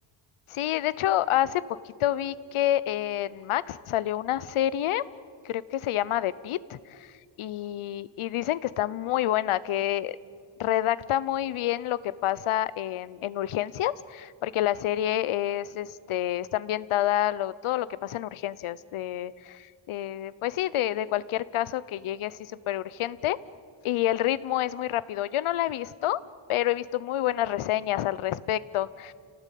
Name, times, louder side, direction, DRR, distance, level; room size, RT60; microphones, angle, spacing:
voice 1, 0.5-1.6 2.0-5.0 5.4-7.1 7.4-10.2 10.6-23.4 23.8-26.2 26.5-29.1, left 13 dB, 85° left, 18 dB, 0.8 m, -28 dB
29.5 x 18.0 x 8.4 m, 2.1 s
wide cardioid pair, 170°, 48 cm